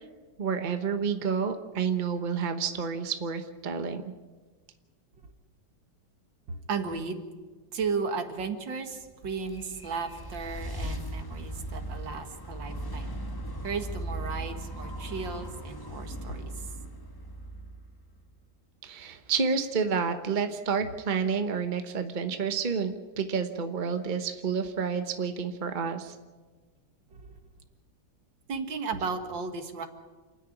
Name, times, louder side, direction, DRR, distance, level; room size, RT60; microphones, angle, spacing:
voice 1, 0.4-4.0 18.8-26.2, right 6 dB, 40° right, 7 dB, 0.7 m, -29 dB
voice 2, 6.5-7.3 7.7-13.1 13.6-16.5 27.1-27.3 28.5-29.9, right 5 dB, 60° right, 7 dB, 2.3 m, -35 dB
sound 1, 9.1-18.3, right 1 dB, 15° left, 1.0 m, -38 dB
28.5 x 10.0 x 10.0 m, 1.3 s
omnidirectional pair, 2.4 m